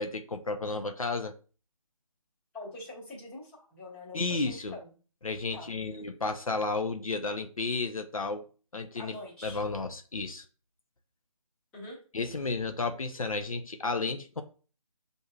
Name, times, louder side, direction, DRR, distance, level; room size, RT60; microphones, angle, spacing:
voice 1, 0.0-1.3 4.1-4.7 5.2-8.5 8.7-9.2 9.4-10.4 12.1-14.4, left 3 dB, 65° left, 0.6 m, -32 dB
voice 2, 2.5-4.9 5.5-6.0 8.9-9.6 11.7-12.0, left 2 dB, 5° left, 0.9 m, -44 dB
7.2 x 2.7 x 2.3 m
figure-of-eight pair, 150°, 19 cm